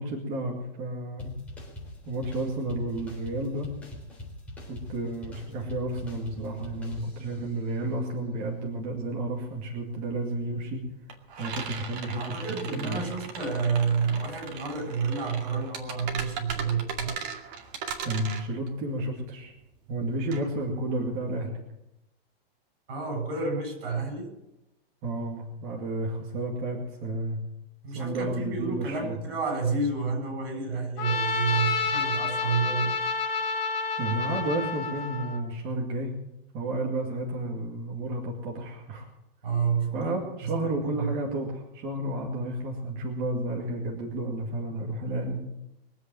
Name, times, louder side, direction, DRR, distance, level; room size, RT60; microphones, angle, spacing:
voice 1, 0.0-1.3 2.0-3.7 4.7-10.8 11.4-13.0 18.0-19.5 19.9-21.5 25.0-27.4 27.9-29.2 34.0-36.1 36.5-39.1 39.9-45.4, right 2 dB, 30° right, -1 dB, 2.3 m, -32 dB
sound 1, 1.2-7.6, left 1 dB, 5° left, 3.9 m, -43 dB
sound 2, 8.4-8.5 8.7-21.4, right 6 dB, 45° right, 2.4 m, -38 dB
voice 2, 12.1-17.1 22.9-24.3 27.8-32.9 39.4-40.1 40.4-41.1, right 5 dB, 65° right, 5 dB, 7.7 m, -29 dB
Trumpet, 31.0-35.4, left 4 dB, 35° left, 5.2 m, -29 dB
23.0 x 8.2 x 7.6 m, 0.87 s
supercardioid pair, 175°, 30 cm